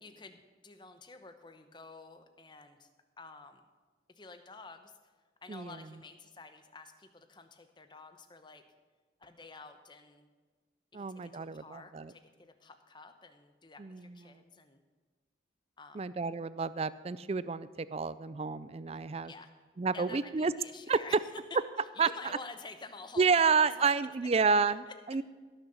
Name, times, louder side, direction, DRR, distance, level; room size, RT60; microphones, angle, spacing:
voice 1, 0.0-2.9 3.2-3.6 4.1-4.9 5.4-8.6 9.2-10.3 10.9-14.8 15.8-16.0 19.2-19.5 19.9-23.9 24.9-25.0, left 3 dB, 25° left, 8 dB, 0.9 m, -50 dB
voice 2, 10.9-12.1 13.8-14.4 15.9-19.3 19.8-20.5 20.9-21.0 22.0-22.1 23.2-25.2, right 5 dB, 30° right, 16 dB, 0.4 m, -30 dB
17.5 x 6.6 x 7.0 m, 1.4 s
head